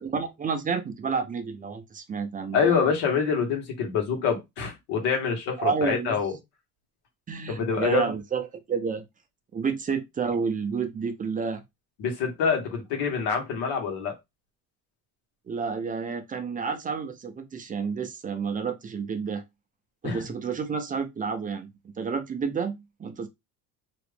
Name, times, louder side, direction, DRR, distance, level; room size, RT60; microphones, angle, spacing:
voice 1, 0.0-2.8 5.6-6.2 7.3-9.0 9.5-11.6 15.5-19.4 20.0-21.7 22.0-23.3, right 5 dB, 20° right, 0.5 m, -30 dB
voice 2, 2.5-6.3 7.5-8.1 12.0-14.1 20.0-20.2, left 6 dB, 80° left, 1.5 m, -26 dB
2.9 x 2.4 x 3.3 m
cardioid pair, 145°, 40 cm